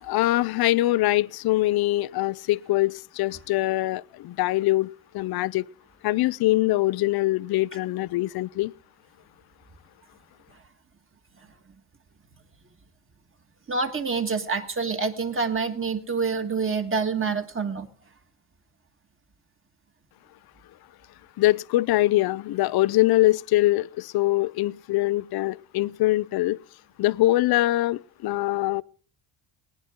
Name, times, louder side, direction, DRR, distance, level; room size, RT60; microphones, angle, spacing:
voice 1, 0.0-4.9 5.1-5.6 6.0-8.7 21.4-26.6 27.0-28.8, left 17 dB, 50° left, 0.5 m, -23 dB
voice 2, 13.7-17.9, right 4 dB, 25° right, 1.6 m, -27 dB
20.0 x 10.0 x 3.7 m
cardioid pair, 100°, 49 cm